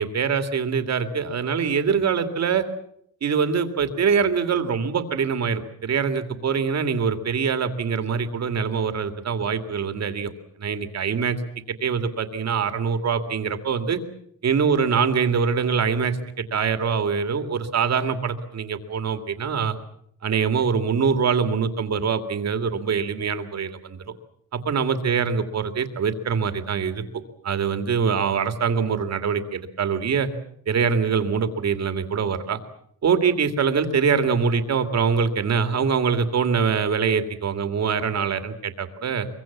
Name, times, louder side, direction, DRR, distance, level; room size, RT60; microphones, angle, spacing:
voice 1, 0.0-2.7 3.2-10.3 10.6-11.4 11.8-14.0 14.4-19.8 20.2-24.0 24.5-27.0 27.4-30.3 30.7-32.6 33.0-39.3, right 6 dB, 45° right, 9 dB, 2.5 m, -24 dB
24.0 x 23.5 x 7.4 m, 0.70 s
cardioid pair, 125°, 36 cm